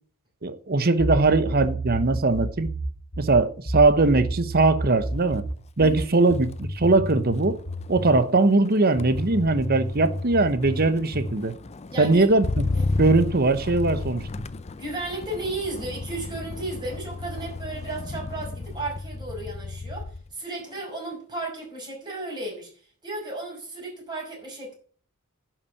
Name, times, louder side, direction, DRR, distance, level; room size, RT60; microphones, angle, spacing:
voice 1, 0.4-2.7 3.2-5.4 5.8-7.6 7.9-11.5 12.0-12.7 13.0-14.3, right 3 dB, 45° right, 1.0 m, -21 dB
sound 1, 1.0-8.3 9.0-11.4, right 1 dB, 50° left, 2.9 m, -31 dB
Motor vehicle (road), 5.2-5.5 5.9-20.3 20.7-21.1, left 3 dB, 30° left, 0.5 m, -33 dB
voice 2, 11.9-12.3 12.9-13.0 14.8-22.7 23.0-24.7, right 2 dB, 20° right, 6.0 m, -34 dB
11.0 x 6.0 x 8.2 m
head